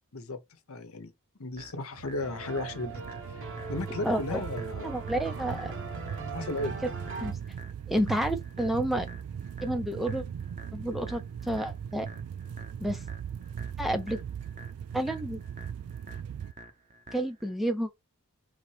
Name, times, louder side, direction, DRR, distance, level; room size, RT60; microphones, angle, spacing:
voice 1, 0.7-1.1 1.4-3.0 3.3-3.4 3.7-4.9 6.3-6.8, left 2 dB, 65° left, 0.9 m, -35 dB
sound 1, 1.6-17.6, right 2 dB, 35° right, 0.8 m, -51 dB
sound 2, 1.9-16.5, right 8 dB, 75° right, 0.3 m, -39 dB
sound 3, 2.2-7.3, right 3 dB, 60° right, 1.1 m, -41 dB
voice 2, 4.0-4.4 4.8-5.7 7.2-7.4 7.9-9.1 9.6-10.2 10.7-12.1 12.8-13.0 13.8-14.2 14.9-15.4 17.1-17.9, right 1 dB, ahead, 0.6 m, -30 dB
3.9 x 2.9 x 4.8 m
head